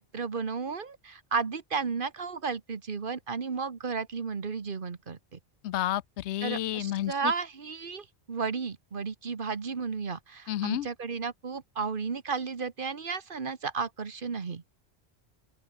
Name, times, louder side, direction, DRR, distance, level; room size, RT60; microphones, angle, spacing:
voice 1, 0.0-5.4 6.4-14.6, right 5 dB, 50° right, 1.4 m, -33 dB
voice 2, 5.6-7.3 10.5-10.9, left 13 dB, 85° left, 0.9 m, -30 dB
open air
omnidirectional pair, 1.1 m